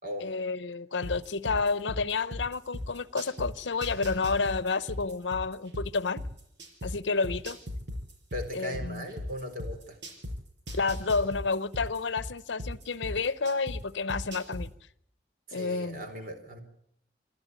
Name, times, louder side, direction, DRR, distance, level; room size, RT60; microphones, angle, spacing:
voice 1, 0.2-6.2 6.8-7.6 8.5-9.0 10.7-14.7 15.5-16.0, left 4 dB, 80° left, 0.8 m, -30 dB
sound 1, 1.0-3.5 3.8-6.9 7.2-10.3 10.7-13.8 14.1-14.6, left 1 dB, 80° right, 5.6 m, -37 dB
voice 2, 8.3-10.0 15.5-16.6, equal, 50° right, 4.0 m, -38 dB
27.0 x 12.5 x 9.3 m
head